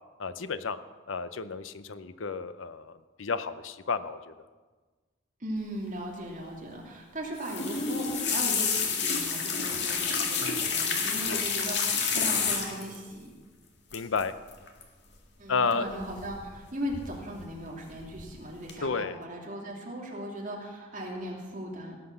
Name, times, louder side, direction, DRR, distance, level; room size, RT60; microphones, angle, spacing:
voice 1, 0.2-0.8 1.1-4.3 10.4-10.7 11.2-11.4 13.9-14.3 15.5-15.9 18.8-19.2, left 5 dB, 85° left, 13 dB, 0.7 m, -32 dB
voice 2, 5.4-13.3 15.4-22.0, right 1 dB, 40° right, -1 dB, 2.7 m, -38 dB
sound 1, 7.4-13.0 13.9-14.2 14.5-14.8 16.0-16.6 16.9-17.5 17.9-18.3 18.7-18.8, left 5 dB, 60° left, 2.0 m, -29 dB
17.5 x 7.7 x 6.9 m, 1.3 s
head